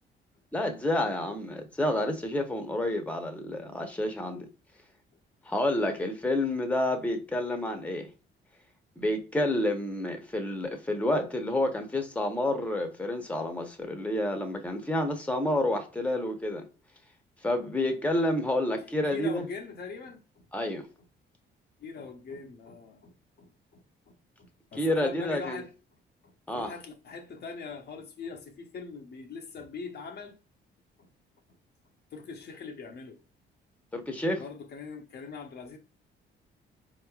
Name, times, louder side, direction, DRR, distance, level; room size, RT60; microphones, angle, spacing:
voice 1, 0.5-4.5 5.5-8.1 9.0-16.6 17.4-19.4 20.5-20.9 24.8-25.6 26.5-26.7 33.9-34.4, left 1 dB, 5° left, 0.9 m, -29 dB
voice 2, 18.9-20.4 21.8-25.7 26.2-30.4 31.0-31.1 32.1-33.2 34.4-35.8, left 5 dB, 55° left, 0.8 m, -42 dB
4.2 x 3.1 x 2.3 m
cardioid pair, 90°, 20 cm